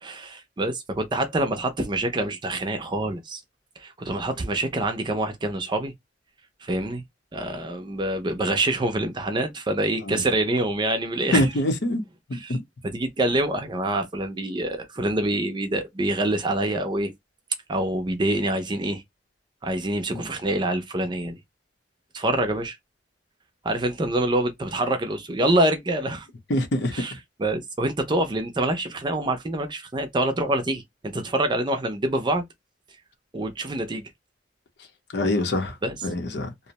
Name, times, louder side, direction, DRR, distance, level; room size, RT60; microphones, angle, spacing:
voice 1, 0.0-3.4 3.8-5.9 6.6-7.0 7.3-11.5 12.3-12.6 12.9-17.1 17.7-19.0 19.6-21.4 22.1-22.8 23.6-26.3 26.9-27.1 27.4-32.4 33.3-34.0 35.8-36.0, right 1 dB, 25° right, 0.4 m, -26 dB
voice 2, 11.3-12.0 12.3-12.6 20.1-20.2 26.5-27.0 35.1-35.8 36.0-36.5, left 1 dB, 65° left, 0.7 m, -24 dB
2.5 x 2.0 x 2.8 m
head